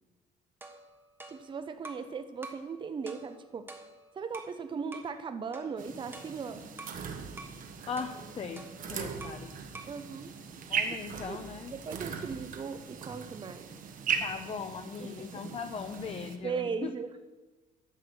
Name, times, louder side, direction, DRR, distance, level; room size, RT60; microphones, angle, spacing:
sound 1, 0.6-2.1 2.4-2.7 3.1-4.6 4.9-5.2 5.5-7.0 7.4-7.6 8.0-9.5 9.7-10.0, right 2 dB, 15° right, 1.2 m, -48 dB
voice 1, 1.3-3.7 4.1-6.7 9.9-11.0 11.3-11.4 11.7-13.7 15.0-15.1 16.4-17.1, right 5 dB, 30° right, 9 dB, 0.7 m, -38 dB
sound 2, 5.8-16.4, right 6 dB, 50° right, 1.2 m, -39 dB
voice 2, 7.9-9.7 10.7-11.7 14.2-16.9, left 5 dB, 35° left, 7 dB, 0.7 m, -39 dB
10.0 x 6.2 x 6.9 m, 1.2 s
cardioid pair, 110°, 17 cm